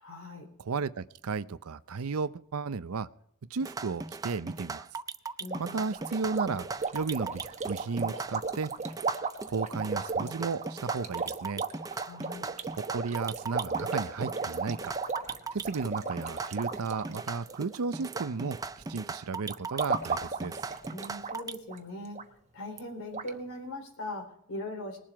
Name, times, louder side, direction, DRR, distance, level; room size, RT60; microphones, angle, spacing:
voice 1, 0.0-0.5 5.4-5.8 12.0-12.5 20.9-22.2 22.5-25.0, left 1 dB, 70° left, 4 dB, 3.9 m, -40 dB
voice 2, 0.6-3.1 3.5-4.9 5.6-6.7 6.9-8.7 9.5-11.6 12.7-14.9 15.5-18.6 18.9-20.6, right 4 dB, 75° right, 15 dB, 0.6 m, -34 dB
sound 1, 3.6-21.6, right 4 dB, 15° right, 0.4 m, -39 dB
sound 2, 5.5-18.3 18.5-19.0 19.5-21.4 21.7-21.8 22.2-22.3 22.8-22.9 23.1-23.3, right 4 dB, 30° right, 1.0 m, -35 dB
20.5 x 7.5 x 4.9 m, 0.77 s
head